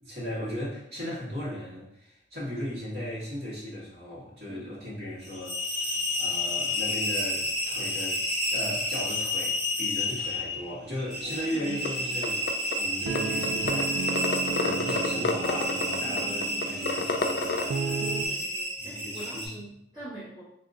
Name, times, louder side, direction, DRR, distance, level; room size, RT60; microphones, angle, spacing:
voice 1, 0.0-8.2 8.5-14.2 14.5-18.1 18.8-19.6, equal, 70° right, -6 dB, 1.4 m, -37 dB
sound 1, 5.2-19.5, left 1 dB, ahead, 1.0 m, -31 dB
sound 2, 11.2-18.3, right 5 dB, 85° right, 0.3 m, -35 dB
sound 3, 11.9-12.0 12.2-12.7 13.2-13.3 13.4-13.8 14.1-17.6, left 4 dB, 60° left, 0.3 m, -28 dB
voice 2, 15.9-17.0 18.2-20.4, right 2 dB, 25° right, -10 dB, 1.2 m, -44 dB
2.7 x 2.6 x 3.6 m, 0.74 s
head